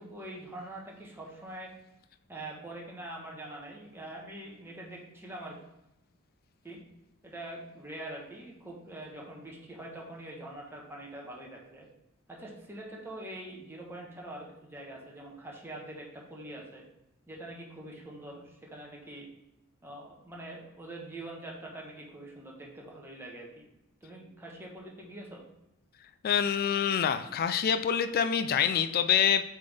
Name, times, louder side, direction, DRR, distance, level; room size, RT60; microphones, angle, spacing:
voice 1, 0.0-1.7 2.3-5.6 6.6-6.8 7.2-11.9 12.3-16.8 17.3-19.3 19.8-23.5 24.0-25.5, right 1 dB, 10° right, -2 dB, 1.1 m, -44 dB
voice 2, 26.2-29.4, left 8 dB, 45° left, 9 dB, 0.3 m, -26 dB
7.7 x 3.6 x 3.4 m, 0.89 s
head